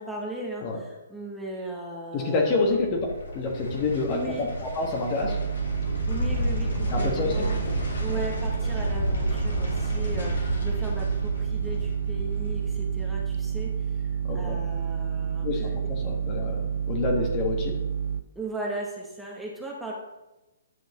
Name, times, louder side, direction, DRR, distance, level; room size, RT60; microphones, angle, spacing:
voice 1, 0.0-2.6 4.1-4.5 6.1-7.7 8.0-14.0 14.3-15.5 18.3-19.9, right 2 dB, 5° right, -3 dB, 1.2 m, -37 dB
voice 2, 2.1-3.1 3.3-5.4 6.9-7.4 8.1-8.2 14.2-14.7 15.4-17.8, left 3 dB, 30° left, 1 dB, 1.4 m, -28 dB
sound 1, 2.6-15.6 16.0-16.1, left 1 dB, 70° left, 2.5 m, -33 dB
sound 2, 5.2-18.2, right 7 dB, 65° right, 0.4 m, -29 dB
9.5 x 6.1 x 3.0 m, 0.99 s
figure-of-eight pair, 130°, 0 cm